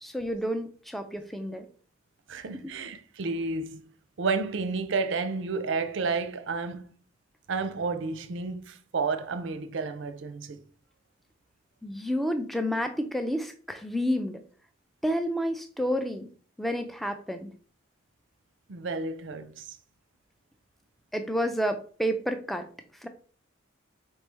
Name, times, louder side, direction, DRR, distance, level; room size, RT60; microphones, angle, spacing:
voice 1, 0.0-1.7 11.8-14.4 15.0-16.3 16.6-17.5 21.1-22.7 23.0-23.1, equal, ahead, 0.3 m, -30 dB
voice 2, 2.3-3.8 4.2-6.8 7.5-10.6 18.7-19.8, right 4 dB, 65° right, 0.5 m, -31 dB
4.3 x 3.1 x 3.3 m
head